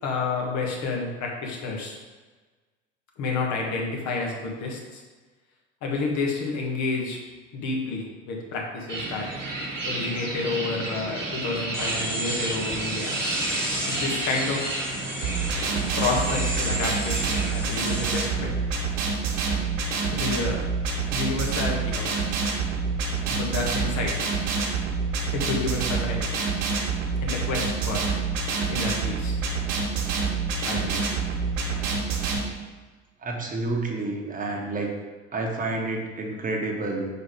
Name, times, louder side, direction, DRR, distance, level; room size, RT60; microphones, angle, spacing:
voice 1, 0.0-2.0 3.2-5.0 5.8-7.2 7.5-9.3 9.9-13.2 13.9-14.7 16.0-18.5 20.1-20.6 21.1-22.1 23.3-24.3 25.3-26.3 27.2-28.0 28.7-29.4 30.7-31.0, left 3 dB, 50° left, -1 dB, 1.5 m, -29 dB
sound 1, 8.9-17.5, right 2 dB, 90° right, 1.0 m, -32 dB
sound 2, 11.7-18.2, equal, ahead, 1.7 m, -33 dB
sound 3, 15.2-32.4, right 5 dB, 55° right, 1.6 m, -27 dB
voice 2, 33.2-34.9 35.3-37.1, right 2 dB, 20° right, 0 dB, 1.3 m, -29 dB
5.0 x 4.6 x 5.1 m, 1.3 s
figure-of-eight pair, 70°, 37 cm